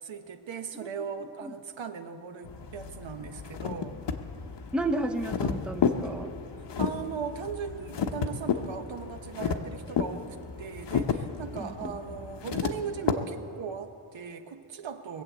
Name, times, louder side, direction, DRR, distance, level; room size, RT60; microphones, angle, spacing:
voice 1, 0.0-4.0 6.8-15.2, right 6 dB, 70° right, 7 dB, 1.1 m, -38 dB
voice 2, 0.7-1.1 1.4-1.5 4.7-6.3 11.5-11.9, right 1 dB, ahead, 5 dB, 0.6 m, -32 dB
sound 1, 2.4-13.1, left 6 dB, 60° left, 1.0 m, -32 dB
21.5 x 7.7 x 8.0 m, 2.5 s
wide cardioid pair, 130°, 47 cm